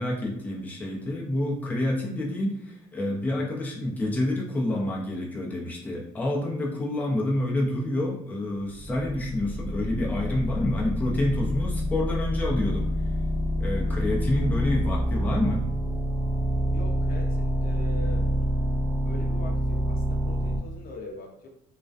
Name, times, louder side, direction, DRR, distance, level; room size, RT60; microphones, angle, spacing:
voice 1, 0.0-12.9 13.6-15.6, left 1 dB, 10° left, -3 dB, 0.5 m, -28 dB
sound 1, 8.7-20.6, equal, 50° right, 0.5 m, -27 dB
voice 2, 16.7-18.3 19.0-21.5, left 2 dB, 60° left, 1 dB, 0.5 m, -42 dB
2.4 x 2.1 x 2.4 m, 0.73 s
cardioid pair, 110°, 17 cm